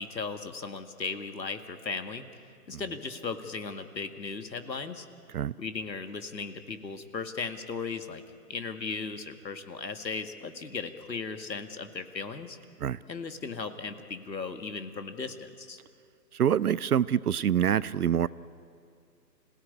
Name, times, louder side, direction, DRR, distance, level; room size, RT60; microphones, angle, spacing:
voice 1, 0.0-2.2 2.7-5.1 5.6-8.2 8.5-12.6 13.1-15.8, left 4 dB, 90° left, 8 dB, 2.0 m, -37 dB
voice 2, 16.3-18.3, right 9 dB, 65° right, 19 dB, 0.6 m, -26 dB
26.5 x 16.5 x 9.7 m, 2.4 s
hypercardioid pair, 150°, 50 cm